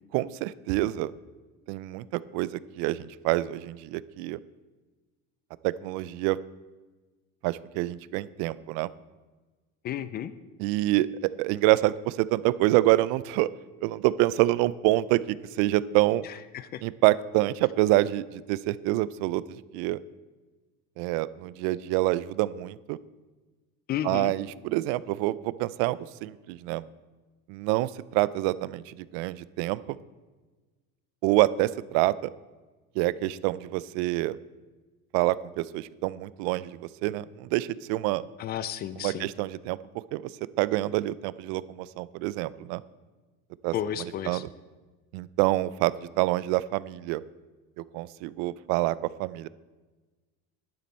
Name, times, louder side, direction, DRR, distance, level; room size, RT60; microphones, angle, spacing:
voice 1, 0.1-1.1 1.7-4.4 5.6-6.4 7.4-8.9 10.6-13.5 13.8-16.3 16.8-20.0 21.0-23.0 24.0-26.8 27.5-30.0 31.2-32.1 33.0-34.4 35.1-38.2 39.0-39.8 40.1-40.2 40.6-42.8 43.6-43.7 44.3-44.5 45.1-47.2 47.8-49.5, right 17 dB, 80° right, 19 dB, 0.5 m, -27 dB
voice 2, 9.8-10.3 16.2-16.8 23.9-24.3 38.4-39.3 43.7-44.4, left 10 dB, 30° left, 15 dB, 0.4 m, -33 dB
10.5 x 9.3 x 4.4 m, 1.3 s
cardioid pair, 155°, 32 cm